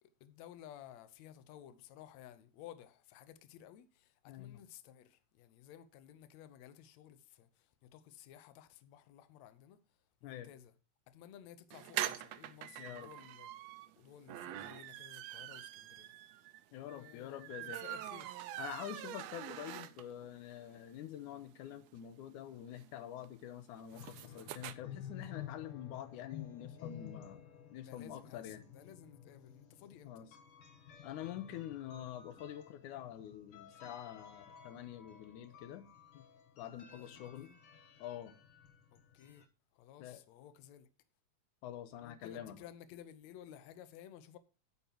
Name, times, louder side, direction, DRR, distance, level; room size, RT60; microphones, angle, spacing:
voice 1, 0.0-9.8 10.2-10.7 11.1-13.5 13.9-16.1 16.8-18.4 27.8-30.1 36.9-37.6 38.9-39.5 39.7-40.9 42.0-44.4, left 11 dB, 75° left, 2.0 m, -55 dB
voice 2, 4.3-4.6 10.2-10.5 12.8-13.1 16.7-17.8 18.6-27.4 27.7-28.6 30.0-30.3 31.0-35.9 36.1-36.2 36.6-37.5 38.0-38.4 40.0-40.2 41.6-42.6, left 11 dB, 90° left, 2.4 m, -46 dB
sound 1, 11.7-20.3 20.7-20.8 21.0-21.1 21.3-24.7, right 13 dB, 75° right, 1.7 m, -44 dB
sound 2, 23.9-39.4, left 8 dB, 55° left, 1.8 m, -53 dB
9.7 x 9.5 x 2.9 m
omnidirectional pair, 3.4 m